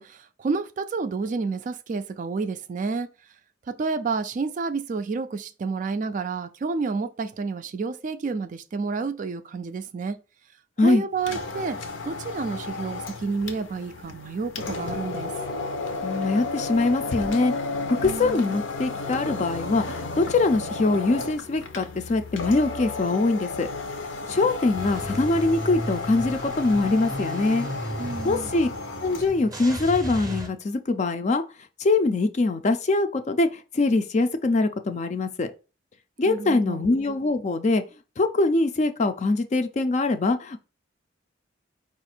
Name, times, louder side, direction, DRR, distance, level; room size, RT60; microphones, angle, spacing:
voice 1, 0.0-3.1 3.7-10.2 10.8-11.8 12.0-15.3 18.0-18.5 28.0-28.5 36.3-36.8, right 4 dB, 40° right, 0.3 m, -30 dB
sound 1, 11.2-29.4, left 3 dB, 75° left, 0.7 m, -33 dB
voice 2, 16.0-17.5 18.0-23.7 24.3-27.7 28.2-28.7 29.0-31.4 31.8-35.5 36.2-37.8 38.2-40.6, left 3 dB, 35° left, 0.4 m, -23 dB
Car / Engine starting / Idling, 24.8-30.5, right 1 dB, 20° right, 0.7 m, -35 dB
4.7 x 2.5 x 4.3 m
head